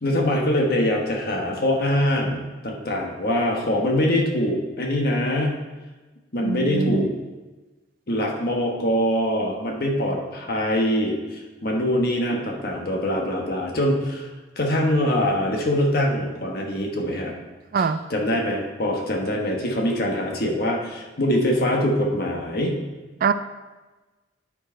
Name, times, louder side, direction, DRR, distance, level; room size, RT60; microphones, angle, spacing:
voice 1, 0.0-5.6 6.3-7.1 8.1-14.3 14.6-17.3 17.8-17.9 18.1-22.8, left 1 dB, 55° left, 0 dB, 1.3 m, -23 dB
voice 2, 6.4-7.1 17.7-18.0 23.2-23.3, right 5 dB, 50° right, 12 dB, 0.3 m, -23 dB
10.0 x 4.8 x 4.4 m, 1.2 s
head